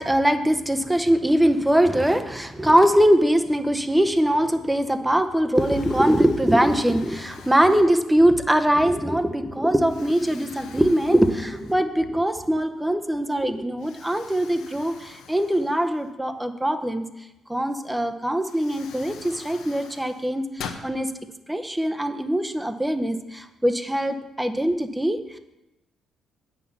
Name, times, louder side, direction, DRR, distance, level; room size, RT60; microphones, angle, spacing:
voice 1, 0.0-17.0 17.5-21.1 21.5-25.4, right 1 dB, 5° right, 8 dB, 0.7 m, -22 dB
Explosion, 4.8-5.2 5.5-8.4 9.0-9.1 9.8-12.1 12.4-12.5 13.8-16.4 17.8-17.9 18.4-20.9, left 6 dB, 90° left, 0.9 m, -44 dB
9.1 x 5.8 x 7.0 m, 0.96 s
cardioid pair, 115°, 0 cm